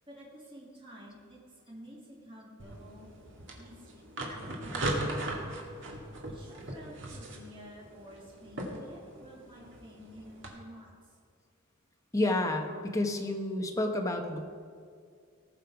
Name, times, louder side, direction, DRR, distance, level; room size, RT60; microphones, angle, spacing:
voice 1, 0.1-3.1 3.6-3.8 4.2-5.6 5.9-11.2, equal, 25° right, -5 dB, 2.4 m, -51 dB
sound 1, 2.6-10.5, right 1 dB, 60° right, 1.9 m, -39 dB
voice 2, 12.1-14.4, left 1 dB, 15° left, 3 dB, 1.0 m, -30 dB
19.0 x 6.7 x 4.7 m, 2.2 s
head